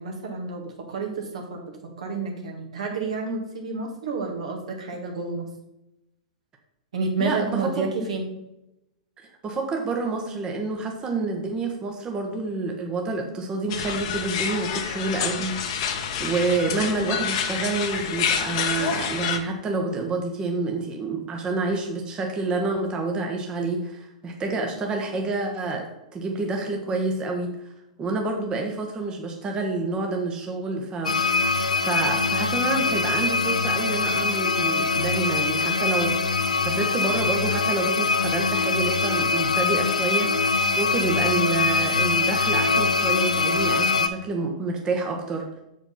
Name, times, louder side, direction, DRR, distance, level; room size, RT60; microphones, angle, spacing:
voice 1, 0.0-1.7 2.0-5.5 6.9-8.2, right 4 dB, 70° right, 1 dB, 2.1 m, -30 dB
voice 2, 7.2-7.9 9.2-15.9 16.2-27.6 28.0-31.2 31.5-45.5, right 3 dB, 25° right, 2 dB, 1.1 m, -28 dB
sound 1, 13.7-19.4, left 7 dB, 50° left, 1.1 m, -28 dB
sound 2, 31.0-44.1, left 3 dB, 85° left, 0.5 m, -23 dB
6.8 x 5.1 x 5.5 m, 0.89 s
figure-of-eight pair, 105°, 4 cm